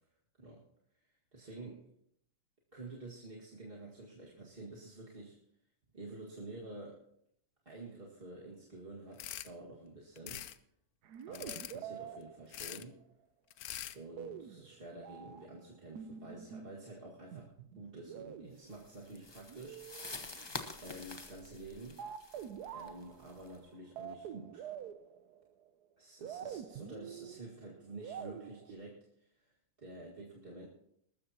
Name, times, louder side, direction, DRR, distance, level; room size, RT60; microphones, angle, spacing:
voice 1, 1.3-1.9 2.7-5.4 5.9-7.0 7.7-10.5 11.3-13.0 13.9-20.3 20.8-22.0 22.7-24.7 26.0-30.7, right 2 dB, 30° right, -4 dB, 2.0 m, -49 dB
sound 1, 9.2-9.5 10.2-10.6 11.3-11.8 12.5-12.8 13.5-14.0, left 12 dB, 75° left, 0.8 m, -43 dB
sound 2, 11.0-13.0 14.2-15.4 15.9-16.8 17.3-20.5 22.0-25.7 26.2-28.7, right 8 dB, 65° right, 1.1 m, -47 dB
sound 3, 18.7-23.6, left 3 dB, 40° left, 0.3 m, -47 dB
21.0 x 13.0 x 2.9 m, 0.72 s
omnidirectional pair, 2.2 m